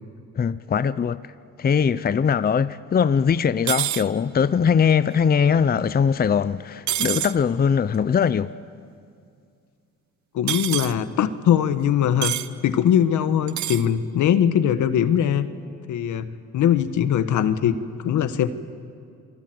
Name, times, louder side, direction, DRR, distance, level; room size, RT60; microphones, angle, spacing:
voice 1, 0.4-1.2 1.6-8.5, left 7 dB, 30° left, 0.6 m, -21 dB
sound 1, 3.7-4.0 6.9-7.3 10.5-10.9 12.2-12.5 13.5-13.8, right 12 dB, 70° right, 1.0 m, -26 dB
voice 2, 10.3-12.3 12.6-15.5 15.9-18.5, left 9 dB, 75° left, 1.5 m, -21 dB
28.5 x 23.0 x 7.9 m
cardioid pair, 90°, 30 cm